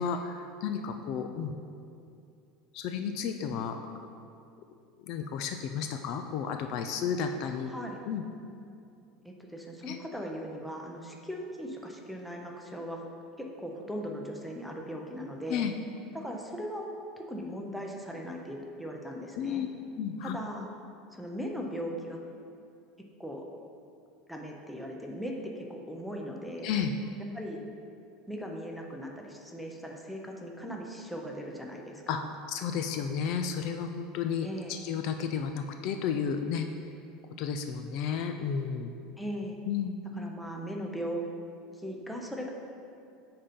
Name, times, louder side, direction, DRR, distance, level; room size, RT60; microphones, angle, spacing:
voice 1, 0.0-1.5 2.7-3.8 5.1-7.7 8.0-8.2 9.8-10.0 15.5-15.7 19.4-19.7 20.0-20.4 26.6-26.9 32.1-32.2 32.5-36.7 37.4-38.9 39.7-40.0, left 7 dB, 50° left, 6 dB, 0.4 m, -32 dB
voice 2, 7.4-8.0 9.2-13.0 13.4-15.6 16.1-16.9 17.2-19.7 20.2-20.7 21.1-22.2 23.2-23.4 24.3-26.7 27.3-27.6 28.3-32.3 34.4-34.8 39.2-39.6 40.1-41.2 41.7-42.5, equal, ahead, 0 dB, 0.6 m, -39 dB
8.5 x 3.9 x 5.2 m, 2.5 s
supercardioid pair, 155°, 0 cm